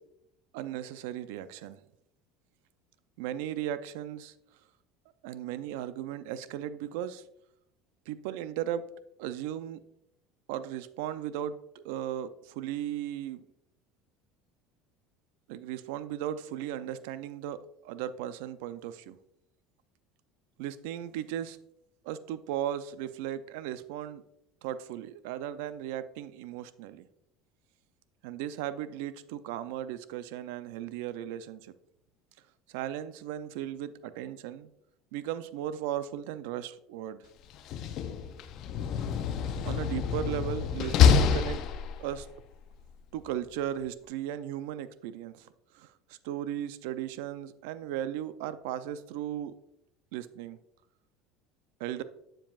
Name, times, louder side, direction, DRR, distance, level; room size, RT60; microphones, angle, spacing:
voice 1, 0.5-1.8 3.2-4.3 5.2-7.2 8.1-8.8 9.2-9.8 10.5-13.4 15.5-17.6 17.8-19.2 20.6-21.6 22.0-24.2 24.6-27.1 28.2-31.7 32.7-34.7 35.1-37.2 39.6-41.6 42.0-42.3 43.1-45.5 45.7-49.5 50.1-50.6 51.8-52.0, right 11 dB, 80° right, 14 dB, 0.4 m, -36 dB
Slam, 37.5-42.3, left 7 dB, 50° left, 0.6 m, -26 dB
7.5 x 7.3 x 2.4 m, 0.77 s
cardioid pair, 135°, 0 cm